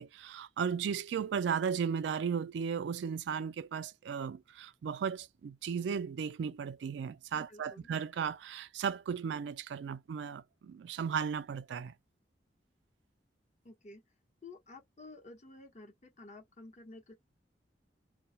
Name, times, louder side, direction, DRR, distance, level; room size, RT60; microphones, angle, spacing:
voice 1, 0.0-11.9, right 7 dB, 85° right, 0.3 m, -35 dB
voice 2, 7.3-7.9 13.6-14.0 14.4-17.1, left 2 dB, 45° left, 0.9 m, -52 dB
2.2 x 2.0 x 2.7 m
head